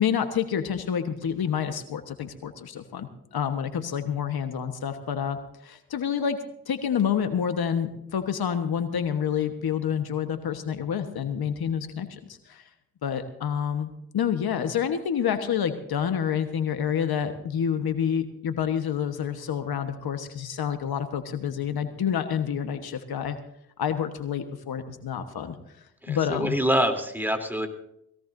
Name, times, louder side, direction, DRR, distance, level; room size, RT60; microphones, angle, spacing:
voice 1, 0.0-6.4 6.7-12.6 13.0-23.4 23.8-25.6 26.1-26.6, left 8 dB, 80° left, 8 dB, 1.3 m, -28 dB
voice 2, 26.0-27.7, equal, 5° right, 5 dB, 3.2 m, -25 dB
21.0 x 17.0 x 2.7 m, 0.76 s
supercardioid pair, 45°, 37 cm